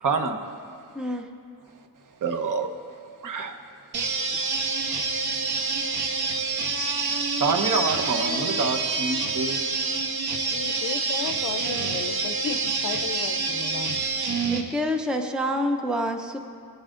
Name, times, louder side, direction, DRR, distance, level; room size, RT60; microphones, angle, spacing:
voice 1, 0.0-0.4 2.2-2.7 3.2-3.6 7.4-9.6, right 4 dB, 50° right, 6 dB, 0.9 m, -26 dB
voice 2, 0.9-1.3 14.4-16.4, equal, ahead, 4 dB, 0.5 m, -27 dB
sound 1, 3.9-14.6, right 4 dB, 70° right, 1.2 m, -27 dB
voice 3, 10.5-14.0, left 7 dB, 60° left, 9 dB, 0.6 m, -34 dB
20.0 x 7.5 x 3.7 m, 2.3 s
wide cardioid pair, 175°, 39 cm